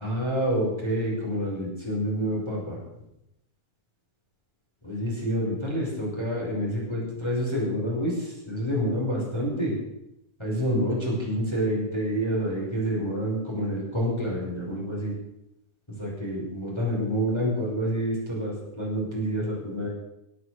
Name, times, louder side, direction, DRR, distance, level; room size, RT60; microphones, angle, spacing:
voice 1, 0.0-2.8 4.8-9.8 10.4-15.1 16.0-19.9, equal, 5° left, -4 dB, 5.2 m, -28 dB
18.0 x 11.0 x 6.6 m, 0.86 s
omnidirectional pair, 4.0 m